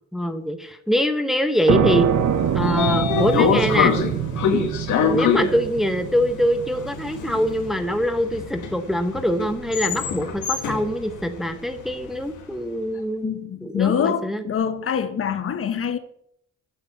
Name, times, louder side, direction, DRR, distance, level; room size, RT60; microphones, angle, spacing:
voice 1, 0.1-2.1 2.5-3.9 4.5-4.7 5.0-13.3 13.6-14.4, equal, ahead, 0.8 m, -23 dB
sound 1, 1.7-9.1, right 8 dB, 65° right, 0.9 m, -25 dB
Train / Sliding door, 2.2-12.3, left 7 dB, 80° left, 1.8 m, -25 dB
voice 2, 13.2-16.0, left 8 dB, 45° left, 0.9 m, -25 dB
8.7 x 4.9 x 7.0 m
cardioid pair, 90°, 30 cm